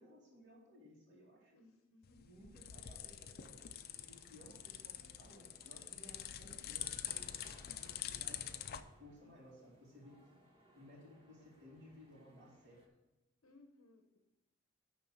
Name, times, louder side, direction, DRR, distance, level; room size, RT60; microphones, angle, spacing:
voice 1, 0.0-1.6 2.2-7.3 7.7-10.3 10.7-12.8, equal, 60° right, -9 dB, 2.6 m, -59 dB
voice 2, 1.5-2.3 13.4-14.2, left 2 dB, 70° left, 3 dB, 1.0 m, -64 dB
sound 1, 2.0-8.8, left 11 dB, 50° left, 0.5 m, -46 dB
sound 2, 3.4-12.9, right 1 dB, 25° right, 1.5 m, -66 dB
11.0 x 3.9 x 6.0 m, 0.96 s
head